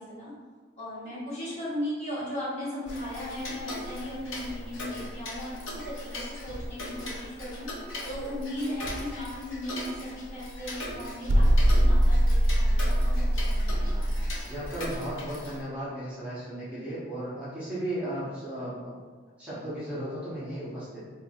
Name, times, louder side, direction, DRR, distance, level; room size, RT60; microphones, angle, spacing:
voice 1, 0.8-7.7 8.0-14.1, left 1 dB, 35° left, -10 dB, 1.5 m, -37 dB
Tick-tock, 2.9-15.6, left 1 dB, 65° left, 0.7 m, -39 dB
sound 1, 11.3-14.4, equal, 75° right, 0.4 m, -22 dB
voice 2, 14.5-19.0 19.4-21.0, right 1 dB, 5° right, -11 dB, 0.8 m, -35 dB
4.4 x 3.1 x 2.4 m, 1.5 s
head